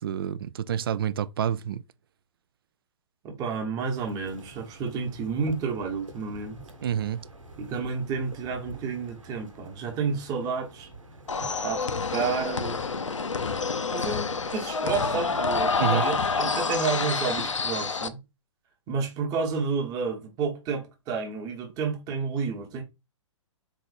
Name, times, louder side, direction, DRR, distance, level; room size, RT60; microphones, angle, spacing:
voice 1, 0.0-1.8 6.8-7.2 15.8-16.0, right 9 dB, 45° right, 0.4 m, -28 dB
voice 2, 3.2-6.6 7.6-10.9 11.6-12.8 13.9-18.2 18.9-22.8, right 5 dB, 25° right, 1.1 m, -30 dB
sound 1, 3.9-12.4, right 2 dB, 80° right, 1.2 m, -47 dB
sound 2, 11.3-18.1, left 4 dB, 75° left, 0.6 m, -28 dB
4.1 x 3.1 x 4.0 m
figure-of-eight pair, 115°, 16 cm